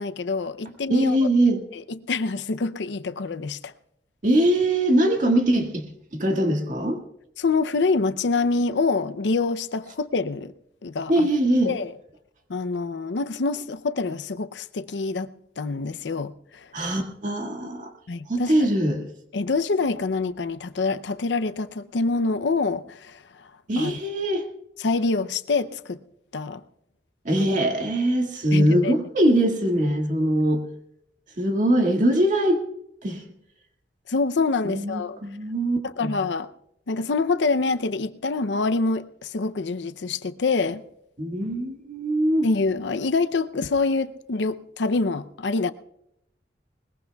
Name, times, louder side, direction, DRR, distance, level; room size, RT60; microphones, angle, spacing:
voice 1, 0.0-1.2 1.7-1.8 2.1-3.7 7.4-10.5 10.8-11.3 11.6-11.9 12.5-15.3 15.6-16.7 18.1-18.7 19.3-23.2 23.8-23.9 24.8-26.0 26.3-26.6 27.4-27.5 28.5-29.0 34.1-35.2 35.8-36.5 36.9-40.8 42.4-45.7, left 3 dB, 80° left, 0.6 m, -26 dB
voice 2, 0.9-1.6 4.2-5.9 6.1-7.0 11.1-11.7 16.7-17.9 18.3-19.0 23.7-24.5 27.3-30.6 31.4-32.6 33.0-33.2 34.6-36.1 41.2-42.5, right 1 dB, 45° right, 1.9 m, -22 dB
21.0 x 20.5 x 2.3 m
head